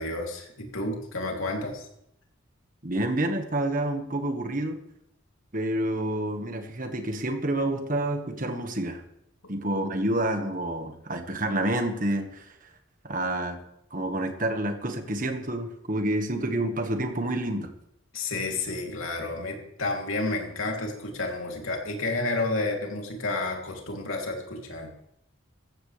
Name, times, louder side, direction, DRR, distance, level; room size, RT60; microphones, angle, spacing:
voice 1, 0.0-1.9 18.1-24.9, left 2 dB, 80° left, 1 dB, 3.0 m, -31 dB
voice 2, 2.8-4.8 5.5-9.0 9.5-12.5 13.0-13.6 13.9-17.7, right 1 dB, 40° right, 6 dB, 1.5 m, -28 dB
16.0 x 14.5 x 3.4 m, 0.78 s
head